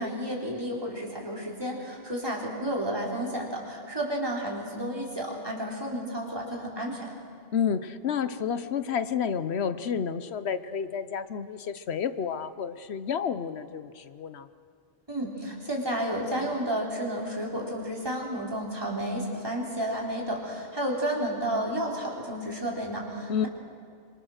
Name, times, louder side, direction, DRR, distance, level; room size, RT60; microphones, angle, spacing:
voice 1, 0.0-7.1 15.1-23.5, right 1 dB, 25° right, -3 dB, 4.2 m, -31 dB
voice 2, 7.5-14.5 23.3-23.5, left 7 dB, 85° left, 12 dB, 1.1 m, -30 dB
25.5 x 25.0 x 6.5 m, 2.2 s
omnidirectional pair, 1.1 m